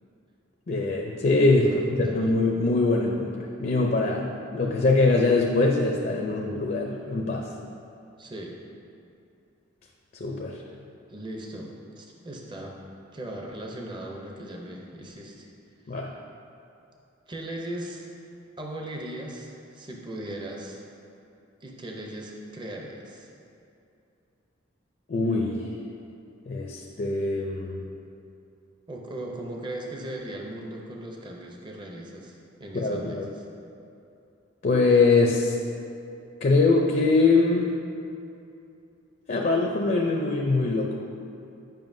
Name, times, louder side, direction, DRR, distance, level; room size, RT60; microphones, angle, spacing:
voice 1, 0.7-7.5 10.1-10.6 15.9-16.1 25.1-25.7 26.5-27.8 32.7-33.3 34.6-35.6 36.4-37.7 39.3-41.0, left 3 dB, 45° left, 0 dB, 0.5 m, -23 dB
voice 2, 1.6-2.3 8.2-8.6 11.1-12.8 13.1-15.5 15.9-16.0 17.3-18.1 18.6-20.8 21.6-23.3 28.9-33.4, right 1 dB, 25° right, 0 dB, 0.6 m, -38 dB
9.0 x 5.4 x 2.6 m, 2.7 s
head